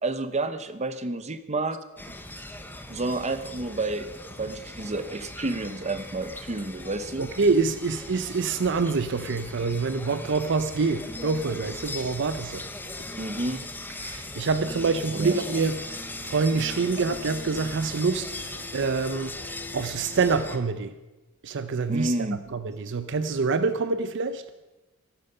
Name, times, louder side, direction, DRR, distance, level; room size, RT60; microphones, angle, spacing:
voice 1, 0.0-1.8 2.9-7.3 13.2-13.6 15.1-15.4 21.9-22.4, right 2 dB, 30° right, 0.8 m, -30 dB
sound 1, 2.0-20.6, left 2 dB, 10° left, 0.9 m, -39 dB
voice 2, 7.2-12.6 14.0-15.8 16.2-19.4 19.7-21.0 21.4-22.1 22.5-24.4, right 4 dB, 55° right, 0.6 m, -26 dB
13.5 x 13.0 x 5.6 m
head